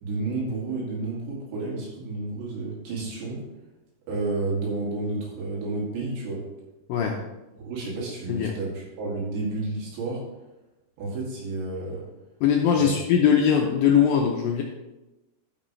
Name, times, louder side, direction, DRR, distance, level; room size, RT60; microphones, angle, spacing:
voice 1, 0.0-3.4 4.1-6.4 7.6-10.2 11.0-12.0 12.8-12.9, right 3 dB, 85° right, -4 dB, 4.7 m, -31 dB
voice 2, 12.4-14.6, left 8 dB, 80° left, 1 dB, 2.1 m, -21 dB
13.5 x 6.2 x 3.2 m, 1.0 s
omnidirectional pair, 5.0 m